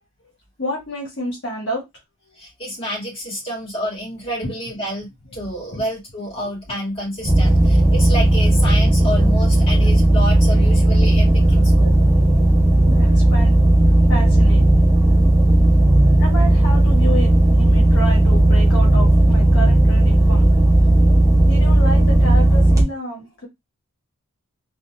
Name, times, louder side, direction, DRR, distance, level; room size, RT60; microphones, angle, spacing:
voice 1, 0.6-1.8 5.7-5.8 11.2-11.5 11.9-12.2 12.5-14.7 16.2-20.5 20.8-20.9 21.4-23.5, equal, 55° left, 1.3 m, -30 dB
voice 2, 2.4-11.9 15.7-15.8, equal, 25° left, 1.9 m, -29 dB
sound 1, 7.2-22.8, right 1 dB, 15° right, 0.9 m, -14 dB
3.8 x 2.6 x 2.2 m
head